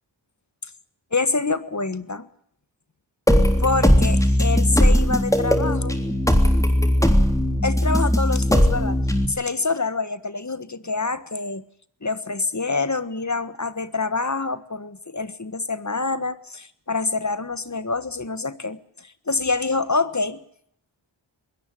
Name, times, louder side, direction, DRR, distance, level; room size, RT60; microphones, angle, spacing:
voice 1, 1.1-2.3 3.6-6.0 7.6-9.0 9.3-11.6 12.0-20.4, left 3 dB, 40° left, 14 dB, 1.5 m, -26 dB
sound 1, 3.3-9.3, equal, 5° left, 3.4 m, -18 dB
22.0 x 18.0 x 9.1 m, 0.67 s
wide cardioid pair, 45°, 46 cm